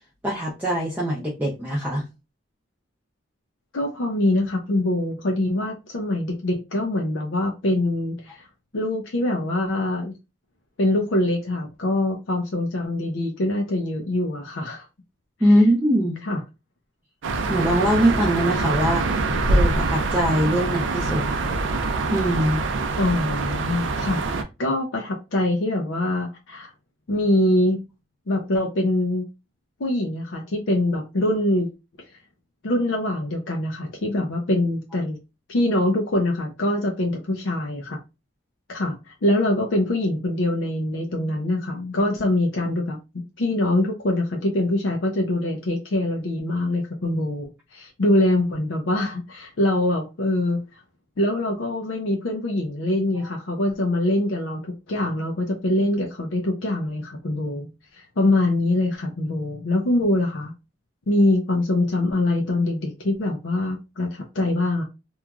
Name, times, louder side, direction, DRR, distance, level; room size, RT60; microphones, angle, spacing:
voice 1, 0.2-2.0 15.4-16.1 17.5-19.0 19.5-21.2 22.1-22.6, equal, 10° right, 0.5 m, -21 dB
voice 2, 3.7-8.5 8.7-10.1 10.8-14.9 16.2-16.4 23.0-26.7 27.1-27.8 28.3-29.3 29.8-31.7 32.6-35.2 35.5-38.0 38.7-43.0 43.4-50.6 51.2-60.5 61.1-64.8, left 1 dB, 70° left, 0.5 m, -24 dB
sound 1, 17.2-24.4, right 3 dB, 65° right, 0.4 m, -24 dB
3.0 x 2.4 x 2.3 m
head